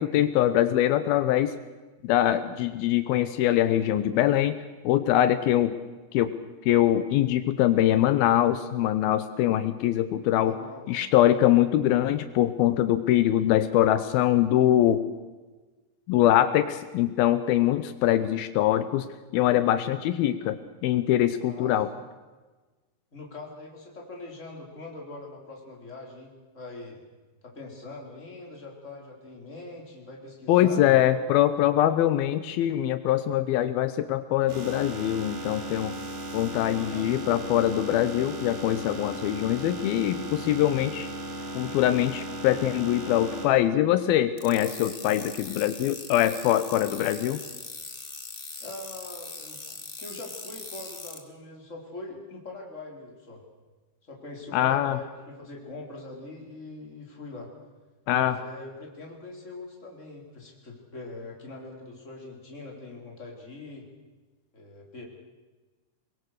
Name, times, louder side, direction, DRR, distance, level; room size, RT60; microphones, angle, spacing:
voice 1, 0.0-1.6 2.0-4.6 4.8-5.8 6.1-6.3 6.7-10.5 10.9-15.0 16.1-19.1 19.3-21.9 30.5-36.0 36.3-41.1 41.6-47.4 54.5-55.0 58.1-58.4, left 12 dB, 80° left, 12 dB, 2.7 m, -23 dB
voice 2, 10.4-11.0 21.4-22.0 23.1-27.0 27.4-31.1 36.6-37.2 48.6-53.4 54.0-57.5 58.1-63.9 64.5-65.1, left 2 dB, 20° left, 0 dB, 4.3 m, -42 dB
sound 1, 34.5-43.5, right 1 dB, 90° right, 6.0 m, -36 dB
sound 2, 44.4-51.2, left 3 dB, 35° left, 0.8 m, -41 dB
24.5 x 22.0 x 6.6 m, 1.2 s
omnidirectional pair, 4.3 m